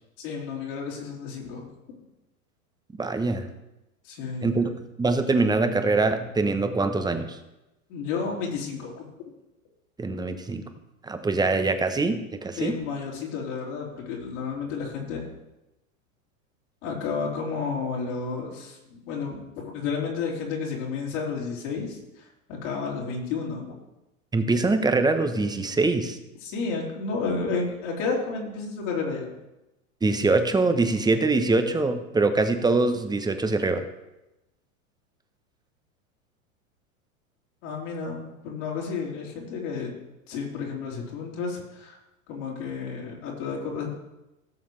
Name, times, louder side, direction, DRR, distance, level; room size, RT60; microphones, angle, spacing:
voice 1, 0.2-1.7 4.0-4.5 7.9-9.0 12.6-15.3 16.8-23.7 26.4-29.3 37.6-39.9 40.3-42.0 42.3-44.0, left 5 dB, 60° left, -3 dB, 3.7 m, -31 dB
voice 2, 3.0-3.5 4.4-4.7 5.0-7.4 10.0-10.6 11.0-12.7 24.3-26.2 30.0-33.8, right 3 dB, 10° right, 8 dB, 0.9 m, -23 dB
17.0 x 7.0 x 3.2 m, 0.95 s
hypercardioid pair, 100°, 42 cm